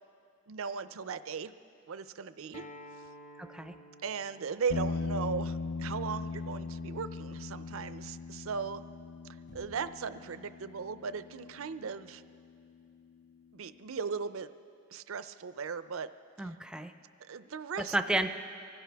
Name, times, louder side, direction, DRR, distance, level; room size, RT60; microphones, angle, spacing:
voice 1, 0.5-1.5 1.9-2.6 4.0-8.8 9.5-12.2 13.5-14.5 14.9-16.1 16.4-16.5 17.3-18.0, right 5 dB, 85° right, 13 dB, 0.5 m, -37 dB
Acoustic guitar, 2.5-7.7, equal, 35° left, 0.9 m, -54 dB
voice 2, 3.4-3.7 16.4-16.9 17.8-18.3, right 1 dB, 5° right, 8 dB, 0.5 m, -32 dB
sound 1, 4.7-13.0, left 4 dB, 85° left, 0.4 m, -39 dB
Knock, 9.5-10.1, right 1 dB, 55° left, 4.5 m, -55 dB
25.0 x 16.0 x 3.5 m, 2.5 s
head